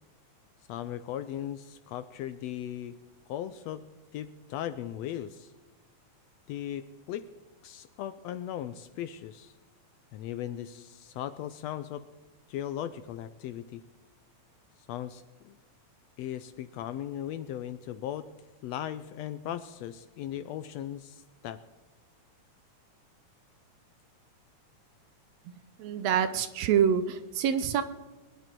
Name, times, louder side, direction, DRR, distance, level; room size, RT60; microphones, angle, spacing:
voice 1, 0.7-3.0 3.3-3.8 4.1-5.5 6.5-7.3 7.6-9.5 10.1-12.0 12.5-13.8 14.9-15.6 16.2-18.3 18.6-21.6, left 11 dB, 80° left, 12 dB, 1.6 m, -37 dB
voice 2, 25.8-27.8, right 8 dB, 75° right, 11 dB, 1.7 m, -26 dB
21.5 x 10.5 x 4.5 m, 1.3 s
omnidirectional pair, 3.3 m